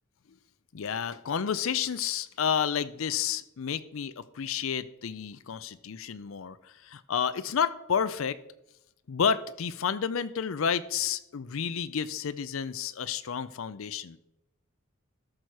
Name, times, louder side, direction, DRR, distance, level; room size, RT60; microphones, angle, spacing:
voice 1, 0.7-8.4 9.1-14.2, left 7 dB, 80° left, 14 dB, 0.5 m, -30 dB
13.5 x 6.2 x 4.7 m, 0.87 s
head